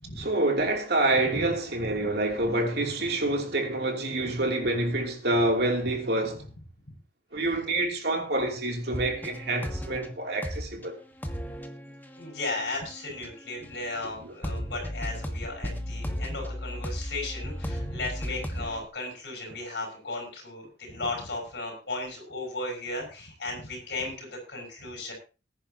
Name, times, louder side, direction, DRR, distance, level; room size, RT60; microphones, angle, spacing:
voice 1, 0.2-6.4 7.3-10.9 14.2-14.3, right 2 dB, 60° right, 2.9 m, -27 dB
sound 1, 8.9-10.1 10.4-10.8 11.2-13.7 14.0-14.1 14.4-18.8, equal, 10° left, 1.4 m, -35 dB
voice 2, 12.2-25.1, left 2 dB, 65° left, 6.7 m, -35 dB
20.0 x 10.5 x 2.9 m
head